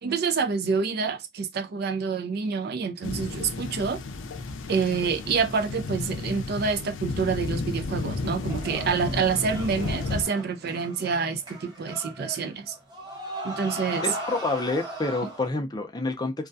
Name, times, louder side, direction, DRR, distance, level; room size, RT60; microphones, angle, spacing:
voice 1, 0.0-4.0 4.7-12.8 13.4-14.0, right 5 dB, 55° right, 0.4 m, -27 dB
sound 1, 3.0-10.3, left 3 dB, 80° left, 0.4 m, -33 dB
sound 2, 8.5-15.5, right 1 dB, 25° right, 0.8 m, -38 dB
voice 2, 14.0-16.5, left 2 dB, 20° left, 0.5 m, -28 dB
2.3 x 2.2 x 2.5 m
head